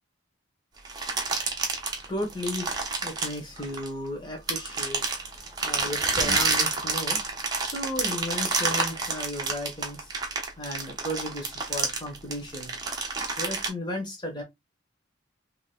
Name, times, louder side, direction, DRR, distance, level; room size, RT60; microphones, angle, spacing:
sound 1, 0.8-4.1 4.5-13.7, right 4 dB, 20° right, 1.0 m, -28 dB
voice 1, 1.3-1.7 2.1-10.1 10.6-12.7 13.4-14.4, left 1 dB, 20° left, 1.3 m, -35 dB
4.9 x 3.0 x 2.2 m
head